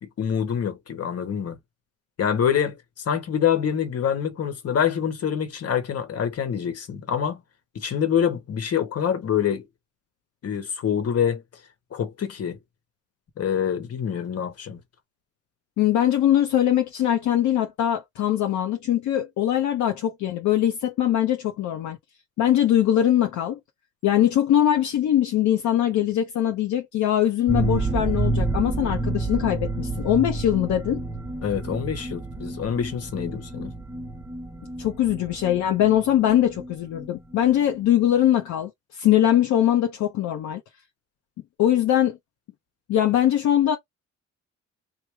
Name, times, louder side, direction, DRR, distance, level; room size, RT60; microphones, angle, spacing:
voice 1, 0.0-1.6 2.2-7.4 7.7-9.7 10.4-11.4 11.9-12.6 13.4-14.8 31.4-33.7, left 8 dB, 55° left, 1.1 m, -26 dB
voice 2, 15.8-22.0 22.4-23.6 24.0-31.0 34.8-40.6 41.6-42.2 42.9-43.8, left 11 dB, 70° left, 0.7 m, -22 dB
sound 1, 27.5-37.1 37.3-37.4 37.7-37.8, right 2 dB, 10° right, 0.8 m, -29 dB
3.1 x 2.2 x 3.3 m
cardioid pair, 90°, 30 cm